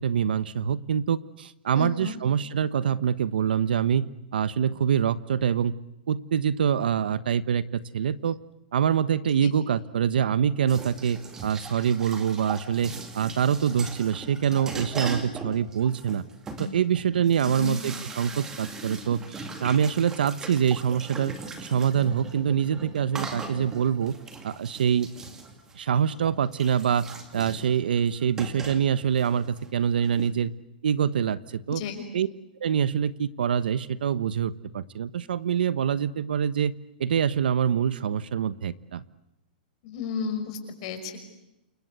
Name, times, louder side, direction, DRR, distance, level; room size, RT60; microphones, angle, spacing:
voice 1, 0.0-5.7 6.1-8.4 8.7-16.2 16.6-24.1 24.4-25.1 25.7-27.1 27.3-30.5 30.8-31.8 32.1-32.3 32.6-36.7 37.0-39.0, right 8 dB, 75° right, 16 dB, 1.2 m, -25 dB
voice 2, 1.7-2.2 9.4-9.5 17.4-17.8 31.7-32.0 39.8-41.2, left 6 dB, 35° left, 6 dB, 5.9 m, -33 dB
sound 1, 10.7-30.3, right 3 dB, 10° right, 2.4 m, -40 dB
29.0 x 24.5 x 8.2 m, 0.90 s
hypercardioid pair, 170°, 5 cm